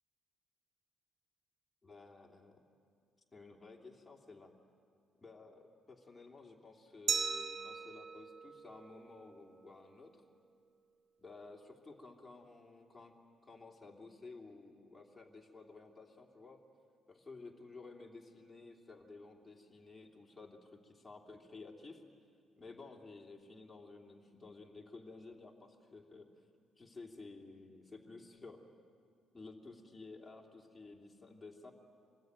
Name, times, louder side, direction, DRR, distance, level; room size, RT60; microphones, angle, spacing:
voice 1, 1.8-2.6 3.3-4.5 5.2-10.2 11.2-13.1 13.4-16.6 17.1-22.0 22.6-26.3 26.8-28.6 29.3-31.7, left 3 dB, 15° left, 0 dB, 2.9 m, -53 dB
Glass, 7.1-9.8, right 6 dB, 65° right, 1.0 m, -39 dB
25.5 x 20.0 x 9.5 m, 2.3 s
cardioid pair, 105°, 0 cm